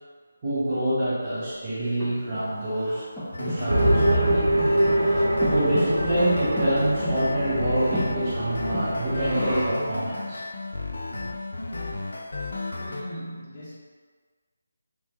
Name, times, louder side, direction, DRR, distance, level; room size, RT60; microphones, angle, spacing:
voice 1, 0.4-3.0 3.4-5.0 5.5-10.4, right 1 dB, 30° right, -9 dB, 1.2 m, -26 dB
Breathing, 1.4-9.9, equal, 5° left, 0.8 m, -35 dB
sound 1, 3.3-13.0, left 3 dB, 65° left, 0.4 m, -34 dB
sound 2, 3.7-9.7, right 1 dB, 75° right, 0.6 m, -24 dB
voice 2, 12.8-13.8, equal, 35° left, -8 dB, 0.8 m, -39 dB
3.2 x 3.0 x 2.7 m, 1.5 s
figure-of-eight pair, 155°, 0 cm